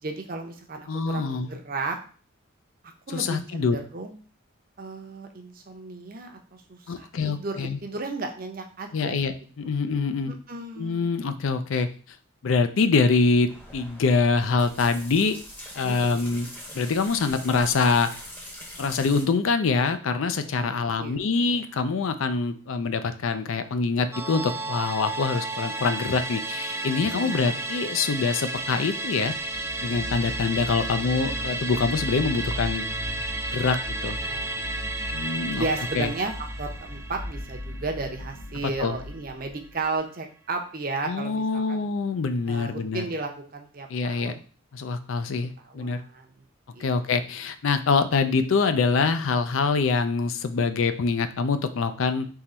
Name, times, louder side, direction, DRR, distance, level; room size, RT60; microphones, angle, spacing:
voice 1, 0.0-2.0 2.8-4.1 4.8-9.2 10.3-11.1 15.8-16.4 20.4-20.6 21.0-21.2 21.5-21.6 27.1-27.7 34.2-34.8 35.6-36.3 36.6-41.9 42.5-44.4 45.4-46.5 46.7-46.9, right 3 dB, 45° right, 3 dB, 0.6 m, -34 dB
voice 2, 0.9-1.6 3.1-3.8 6.9-7.8 8.9-10.3 10.8-11.9 12.4-15.4 15.7-16.5 16.7-18.1 18.8-29.3 29.8-32.8 33.5-34.2 35.1-35.6 35.9-36.1 38.8-38.9 41.1-43.0 43.9-44.3 44.7-46.0 46.8-52.3, left 4 dB, 75° left, 10 dB, 0.4 m, -25 dB
sound 1, 13.5-19.2, equal, 10° left, 0.8 m, -42 dB
Musical instrument, 24.1-38.8 39.1-39.2, right 2 dB, 15° right, 0.3 m, -33 dB
sound 2, 29.3-39.9, left 1 dB, 50° left, 1.0 m, -38 dB
3.8 x 2.9 x 4.2 m, 0.40 s
head